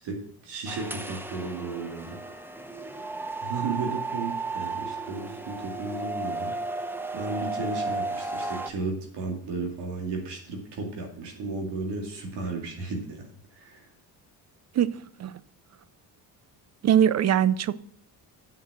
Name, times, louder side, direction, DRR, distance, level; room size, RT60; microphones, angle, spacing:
voice 1, 0.0-2.2 3.4-13.2 13.5-13.9, right 3 dB, 80° right, 1 dB, 2.4 m, -34 dB
sound 1, 0.7-8.7, right 3 dB, 5° right, 0.8 m, -34 dB
voice 2, 16.8-17.8, right 9 dB, 40° right, 17 dB, 0.5 m, -21 dB
7.0 x 6.6 x 6.0 m, 0.65 s
cardioid pair, 105°, 41 cm